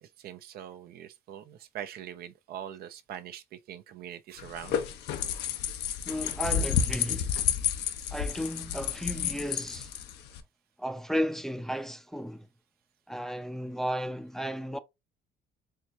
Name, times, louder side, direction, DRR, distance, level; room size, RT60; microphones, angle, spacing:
voice 1, 0.0-4.8, right 10 dB, 65° right, 0.6 m, -43 dB
sound 1, 4.4-10.4, left 8 dB, 85° left, 0.8 m, -31 dB
voice 2, 6.1-7.4 8.1-9.9 10.8-12.5 13.1-14.8, equal, ahead, 0.5 m, -34 dB
4.6 x 3.3 x 2.7 m
cardioid pair, 110°, 17 cm